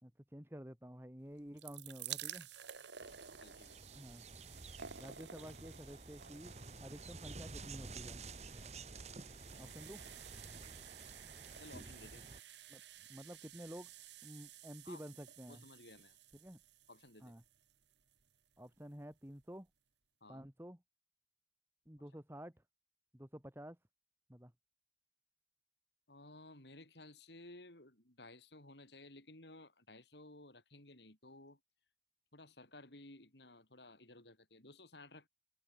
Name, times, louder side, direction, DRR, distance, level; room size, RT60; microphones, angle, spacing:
voice 1, 0.0-2.5 3.9-4.3 5.0-6.5 6.8-8.3 8.5-8.7 9.5-10.0 12.7-12.8 13.1-13.9 14.2-15.6 16.3-16.6 17.2-17.4 18.6-19.7 20.3-20.8 21.9-22.6 23.1-23.8 24.3-24.5, equal, 15° right, 2.0 m, -51 dB
sound 1, 1.3-18.4 19.1-19.2 19.4-19.5, right 10 dB, 85° right, 2.5 m, -53 dB
sound 2, 3.0-12.4, right 3 dB, 35° right, 1.8 m, -51 dB
voice 2, 3.4-3.8 9.5-9.7 11.6-12.2 14.8-15.0 15.5-16.2 16.9-17.3 20.2-20.4 26.1-31.6 32.3-35.3, left 2 dB, 75° left, 5.5 m, -56 dB
head